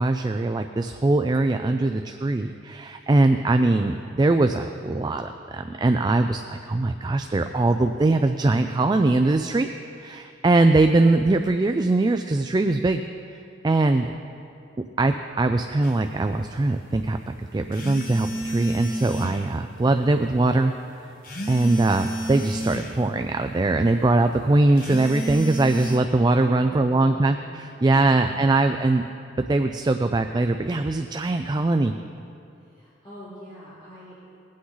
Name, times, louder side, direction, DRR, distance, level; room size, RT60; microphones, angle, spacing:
voice 1, 0.0-9.7 10.0-13.0 13.6-14.1 15.0-20.7 21.5-29.0 29.5-31.9, right 2 dB, 25° right, 7 dB, 0.3 m, -21 dB
sound 1, 15.8-16.0 17.7-19.5 21.2-23.0 24.8-26.0, right 1 dB, 50° left, 1.2 m, -30 dB
voice 2, 26.6-27.6 32.5-34.4, equal, 30° left, -12 dB, 2.9 m, -45 dB
20.0 x 8.5 x 3.9 m, 2.6 s
head